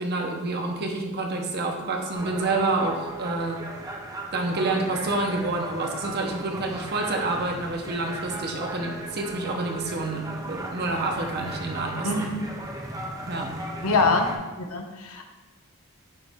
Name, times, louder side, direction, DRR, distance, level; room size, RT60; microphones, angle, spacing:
voice 1, 0.0-3.6 4.3-12.3 13.3-13.5, right 2 dB, 50° right, 2 dB, 0.8 m, -28 dB
sound 1, 2.1-14.4, right 1 dB, 15° right, 0.6 m, -36 dB
voice 2, 12.0-12.4 13.8-15.2, left 3 dB, 85° left, 4 dB, 0.8 m, -24 dB
8.8 x 3.1 x 3.6 m, 1.2 s
head